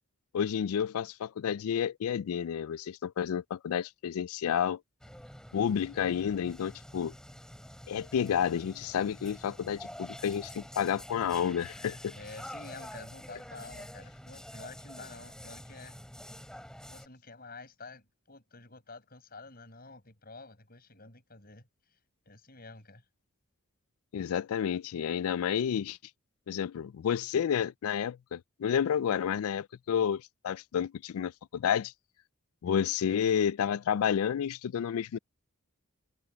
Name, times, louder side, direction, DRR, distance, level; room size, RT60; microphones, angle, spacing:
voice 1, 0.3-4.8 5.5-7.1 7.9-12.1 24.1-26.0 26.5-31.9 32.6-35.2, left 8 dB, 75° left, 0.3 m, -30 dB
sound 1, 5.0-17.1, equal, 5° left, 4.5 m, -47 dB
voice 2, 12.1-16.0 16.9-22.0 22.3-23.0, left 3 dB, 40° left, 7.1 m, -49 dB
head